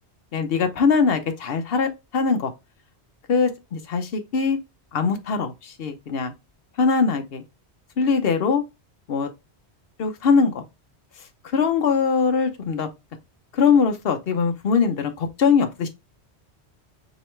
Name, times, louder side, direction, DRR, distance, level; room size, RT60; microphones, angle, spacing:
voice 1, 0.3-2.5 3.3-4.6 4.9-6.3 6.8-7.4 8.0-8.6 9.1-9.3 10.0-10.6 11.5-12.9 13.5-15.9, left 5 dB, 60° left, 0.9 m, -21 dB
5.1 x 3.2 x 3.1 m
omnidirectional pair, 1.1 m